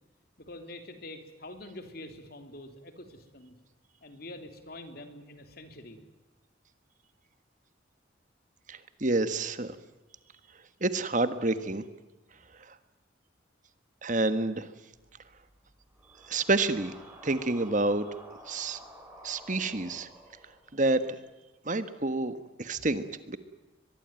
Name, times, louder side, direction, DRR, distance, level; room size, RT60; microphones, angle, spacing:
voice 1, 0.4-3.6 4.0-6.0, left 1 dB, 55° left, 7 dB, 3.4 m, -45 dB
voice 2, 8.7-9.8 10.8-11.8 14.0-14.7 16.3-16.9 17.2-18.1 18.5-18.8 19.2-20.1 20.7-21.1 21.6-23.4, right 2 dB, 45° right, 11 dB, 1.5 m, -28 dB
sound 1, 14.9-21.1, right 1 dB, 10° right, 6.4 m, -52 dB
23.5 x 22.0 x 9.1 m, 1.1 s
head